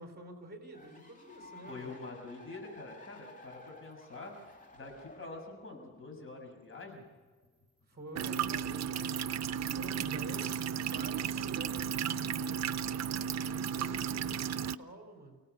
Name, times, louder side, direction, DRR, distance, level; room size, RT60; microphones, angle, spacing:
voice 1, 0.0-2.1 7.9-12.6 12.9-15.4, right 1 dB, 35° right, 4 dB, 4.1 m, -49 dB
sound 1, 0.7-11.8 12.2-13.6, left 1 dB, 25° left, 3.2 m, -56 dB
voice 2, 1.7-7.1, left 3 dB, 45° left, 2 dB, 7.1 m, -46 dB
sound 2, 8.2-14.8, right 8 dB, 60° right, 0.6 m, -34 dB
29.0 x 17.5 x 6.9 m, 1.4 s
cardioid pair, 125°, 30 cm